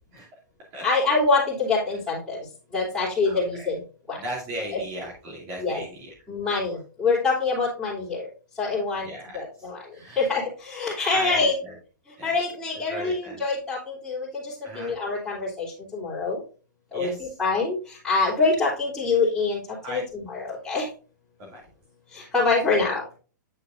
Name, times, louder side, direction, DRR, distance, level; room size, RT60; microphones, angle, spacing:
voice 1, 0.8-2.4 2.7-3.8 4.1-4.2 5.6-5.8 6.3-8.3 8.6-9.8 10.1-11.5 12.2-16.4 16.9-19.6 19.9-20.9 22.1-23.0, left 3 dB, 5° left, -13 dB, 3.3 m, -25 dB
voice 2, 3.3-3.7 4.2-6.1 6.7-6.8 9.0-10.3 11.1-11.8 12.2-12.4 12.9-13.4 14.6-14.9 16.9-17.4 19.8-20.0 21.4-21.6, equal, 35° right, -4 dB, 2.7 m, -37 dB
8.5 x 6.7 x 2.7 m, 0.37 s
hypercardioid pair, 145°, 10 cm